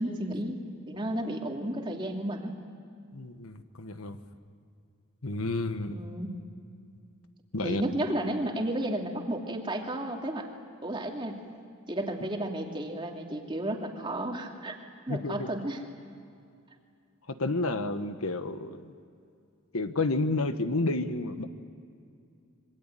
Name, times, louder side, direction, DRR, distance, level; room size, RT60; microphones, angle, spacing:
voice 1, 0.0-2.5 5.9-6.3 7.6-10.5 10.8-11.4 11.9-14.7 15.1-15.8, right 1 dB, 20° right, 1 dB, 2.7 m, -33 dB
voice 2, 3.1-4.2 5.2-6.0 7.5-7.8 15.1-15.5 17.3-18.9 19.7-21.5, left 2 dB, 70° left, 9 dB, 1.4 m, -30 dB
27.0 x 24.5 x 9.1 m, 2.4 s
head